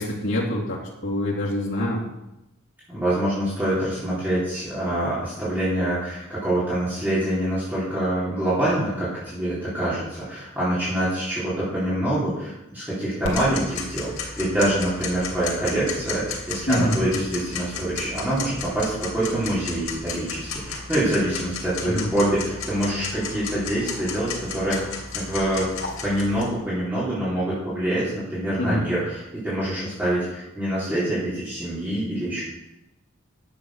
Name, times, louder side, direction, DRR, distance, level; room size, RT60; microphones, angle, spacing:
voice 1, 0.0-2.0 16.7-16.9 21.8-22.1 28.6-28.9, left 1 dB, 65° left, -3 dB, 2.4 m, -25 dB
voice 2, 2.9-24.8 25.1-25.7 26.0-32.4, right 1 dB, 10° right, -11 dB, 3.9 m, -25 dB
Tick-tock, 13.2-26.4, left 4 dB, 90° left, 2.8 m, -34 dB
10.5 x 7.7 x 6.4 m, 0.92 s
head